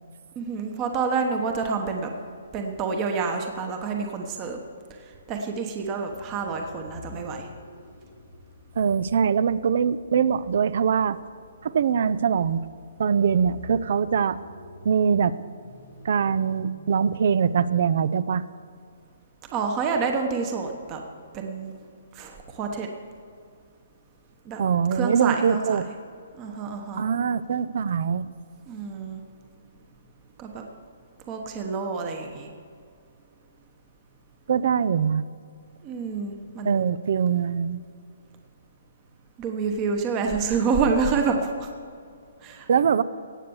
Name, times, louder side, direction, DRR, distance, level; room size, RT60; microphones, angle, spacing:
voice 1, 0.3-2.1 2.5-4.6 4.9-7.5 19.5-21.0 21.3-21.7 22.1-22.9 24.4-24.6 24.9-25.8 26.4-27.0 28.7-29.2 30.4-30.7 31.3-32.5 35.8-36.9 39.4-41.7 42.4-42.7, right 5 dB, 25° right, 4 dB, 1.1 m, -28 dB
sound 1, 6.1-18.3, left 3 dB, 75° left, 2.2 m, -48 dB
voice 2, 8.8-11.2 11.6-12.6 13.0-14.4 14.8-15.4 16.0-18.4 24.6-25.8 27.0-28.3 34.5-35.2 36.6-37.8 42.7-43.0, right 7 dB, 55° right, 17 dB, 0.5 m, -23 dB
17.5 x 6.7 x 7.1 m, 2.3 s
hypercardioid pair, 160°, 0 cm